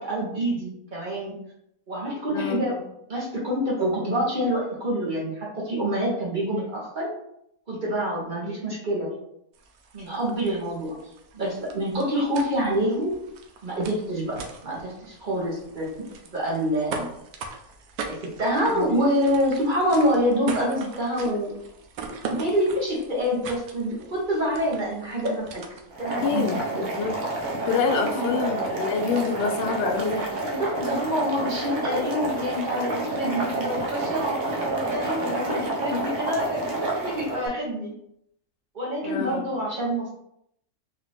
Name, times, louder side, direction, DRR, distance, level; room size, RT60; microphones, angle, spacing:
voice 1, 0.0-1.4 1.9-2.8 3.1-7.1 7.7-9.2 9.9-10.9 11.3-13.1 13.6-15.9 16.3-17.1 18.0-21.5 22.2-25.6 26.0-26.6 27.8-28.4 30.4-37.9 38.7-40.1, equal, 35° right, -4 dB, 1.1 m, -26 dB
sound 1, 9.5-26.1, right 5 dB, 85° right, 1.1 m, -41 dB
Boiling, 25.9-37.5, right 2 dB, 60° right, 1.1 m, -29 dB
voice 2, 26.2-27.2 27.7-30.4 35.0-36.2 39.0-39.4, left 5 dB, 65° left, 4 dB, 0.6 m, -28 dB
3.9 x 2.6 x 3.4 m, 0.77 s
omnidirectional pair, 1.6 m